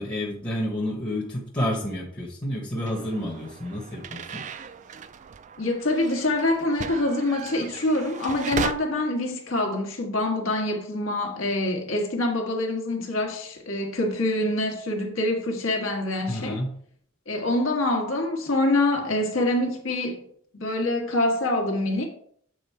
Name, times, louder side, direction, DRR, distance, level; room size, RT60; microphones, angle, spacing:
voice 1, 0.0-4.5 16.3-16.7, left 1 dB, 20° left, 1.0 m, -30 dB
sound 1, 2.9-8.7, right 6 dB, 35° right, 0.4 m, -36 dB
voice 2, 5.6-16.6 17.3-20.3 20.5-22.1, left 1 dB, 70° left, 1.4 m, -25 dB
7.7 x 3.7 x 4.4 m
head